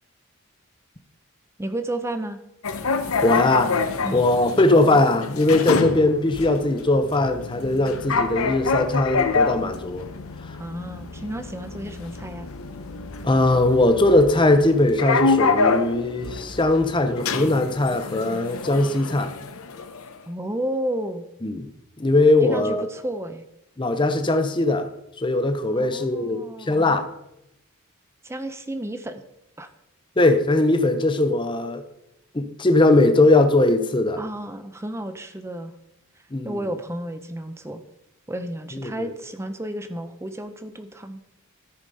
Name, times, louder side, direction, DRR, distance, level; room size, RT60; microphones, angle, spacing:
voice 1, 1.6-2.4 4.0-4.2 10.6-12.5 20.3-21.2 22.4-23.4 25.7-26.9 28.2-29.2 29.6-29.7 34.2-35.7 36.4-37.8 38.3-41.2, right 1 dB, 10° right, 9 dB, 0.6 m, -32 dB
sound 1, 2.6-20.2, left 4 dB, 75° left, 0.8 m, -27 dB
voice 2, 3.2-10.1 10.4-10.6 13.2-19.3 21.4-21.7 22.0-22.9 23.8-24.9 25.2-27.1 30.2-31.8 32.3-34.2 36.3-36.7 38.7-39.1, left 2 dB, 20° left, 8 dB, 0.7 m, -20 dB
13.0 x 5.0 x 5.4 m, 0.84 s
head